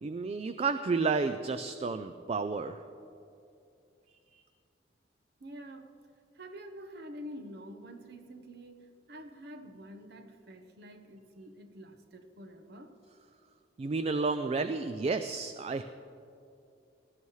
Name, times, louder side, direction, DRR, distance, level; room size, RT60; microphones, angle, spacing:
voice 1, 0.0-2.8 4.3-4.4 13.8-15.8, right 4 dB, 35° right, 0.3 m, -31 dB
voice 2, 5.4-6.0 6.3-13.0, equal, 60° right, 1.0 m, -47 dB
18.0 x 13.0 x 3.2 m
head